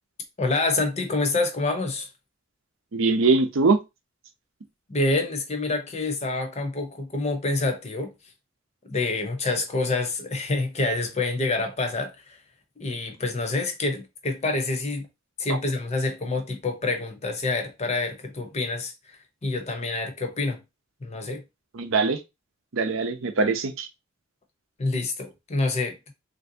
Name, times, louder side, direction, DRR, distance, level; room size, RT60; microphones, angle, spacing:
voice 1, 0.4-2.1 4.9-8.1 8.9-12.4 12.8-15.1 15.4-20.6 21.0-21.4 24.8-26.1, left 3 dB, 35° left, 0.7 m, -27 dB
voice 2, 2.9-3.8 21.7-22.2 22.7-23.9, right 3 dB, 80° right, 0.6 m, -22 dB
3.3 x 2.6 x 2.7 m
head